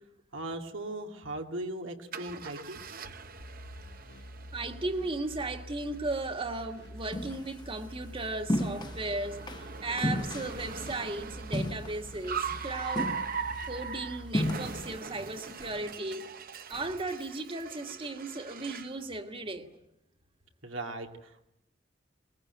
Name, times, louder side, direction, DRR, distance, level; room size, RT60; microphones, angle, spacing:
voice 1, 0.3-2.8 8.1-8.3 20.6-21.5, right 1 dB, 90° right, 2.3 m, -38 dB
Car, 2.1-19.0, right 6 dB, 50° right, 1.0 m, -41 dB
sound 1, 3.4-15.0, equal, 60° left, 1.8 m, -47 dB
voice 2, 4.5-9.4 9.8-13.2 13.7-16.3 16.7-19.7, right 2 dB, 30° right, 1.7 m, -36 dB
sound 2, 7.1-7.5 8.5-9.0 9.5-9.6 10.0-11.0 11.5-12.2 12.5-12.7 13.0-13.6 14.3-14.9, left 1 dB, 20° left, 1.0 m, -32 dB
22.5 x 21.0 x 9.3 m
head